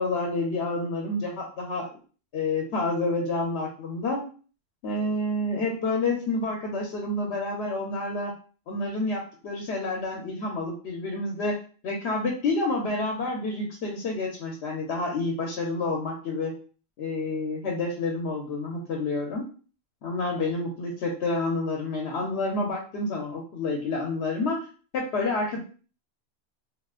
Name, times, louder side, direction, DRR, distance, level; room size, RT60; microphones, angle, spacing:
voice 1, 0.0-1.9 2.3-4.2 4.8-8.3 8.7-11.6 11.8-16.5 17.0-19.4 20.0-24.7 24.9-25.6, left 2 dB, 80° left, 0 dB, 0.9 m, -29 dB
3.6 x 2.4 x 2.3 m, 0.39 s
omnidirectional pair, 1.1 m